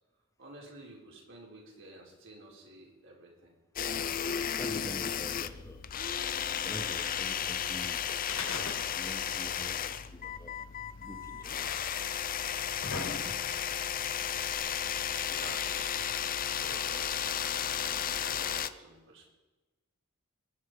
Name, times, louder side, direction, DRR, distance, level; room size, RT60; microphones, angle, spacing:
voice 1, 0.4-3.5 15.2-19.3, right 1 dB, 65° right, -1 dB, 4.3 m, -51 dB
sound 1, 3.8-18.7, left 8 dB, 45° left, 0.6 m, -34 dB
voice 2, 4.5-5.8 6.6-10.5 11.0-11.7 13.1-13.2, left 1 dB, 15° left, 5 dB, 1.3 m, -46 dB
sound 2, 8.3-9.2 9.5-9.6 10.6-10.7 11.6-11.7 12.4-13.7 14.6-14.7, left 3 dB, 75° left, 2.8 m, -39 dB
22.0 x 9.5 x 4.9 m, 1.2 s
head